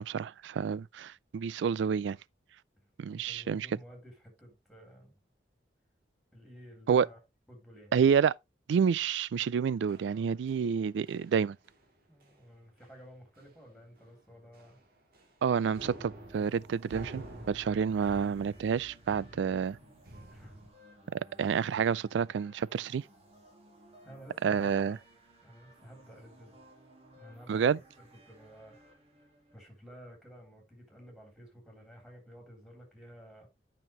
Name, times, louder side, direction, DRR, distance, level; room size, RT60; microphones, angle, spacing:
voice 1, 0.0-2.2 3.0-3.7 6.9-7.1 7.9-8.3 8.7-11.6 15.4-19.8 21.1-23.0 24.4-25.0 27.5-27.8, right 7 dB, 80° right, 0.3 m, -29 dB
voice 2, 3.0-5.2 6.3-7.2 7.5-7.9 12.1-14.8 20.3-20.6 24.0-25.0 25.4-26.6 27.1-28.9 29.5-33.5, equal, ahead, 3.2 m, -52 dB
sound 1, 9.9-10.8 11.1-11.4 11.6-11.9 12.2-12.4 12.8-12.9 13.4-13.7 14.0-14.1 14.5-15.4 15.7-20.7, right 1 dB, 55° right, 1.9 m, -50 dB
sound 2, 16.1-29.6, right 1 dB, 35° right, 2.2 m, -59 dB
9.1 x 5.9 x 3.1 m
head